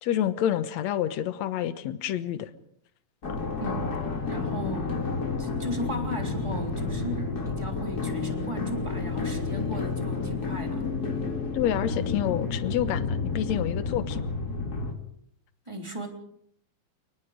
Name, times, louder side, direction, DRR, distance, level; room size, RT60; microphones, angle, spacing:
voice 1, 0.0-2.5 11.5-14.2, left 11 dB, 65° left, 12 dB, 1.9 m, -28 dB
sound 1, 3.2-14.9, left 4 dB, 30° left, 2.1 m, -30 dB
voice 2, 3.6-3.9 4.2-5.0 5.4-11.3 15.7-16.1, equal, 10° right, 3 dB, 2.9 m, -36 dB
29.0 x 20.0 x 5.2 m, 0.68 s
omnidirectional pair, 4.3 m